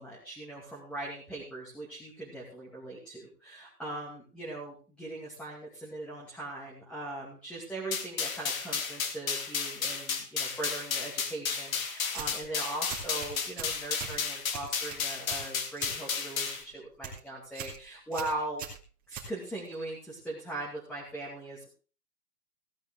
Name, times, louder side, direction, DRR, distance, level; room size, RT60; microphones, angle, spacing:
voice 1, 0.0-18.7 19.1-21.7, right 2 dB, ahead, -5 dB, 2.5 m, -40 dB
sound 1, 7.9-16.6, left 6 dB, 60° left, 2.5 m, -33 dB
sound 2, 12.1-12.5 12.9-14.2 14.5-16.0 16.3-16.6 16.9-17.2 17.6-17.8 18.1-19.7, right 7 dB, 20° right, 2.8 m, -42 dB
17.0 x 9.3 x 3.8 m, 0.37 s
hypercardioid pair, 160°, 47 cm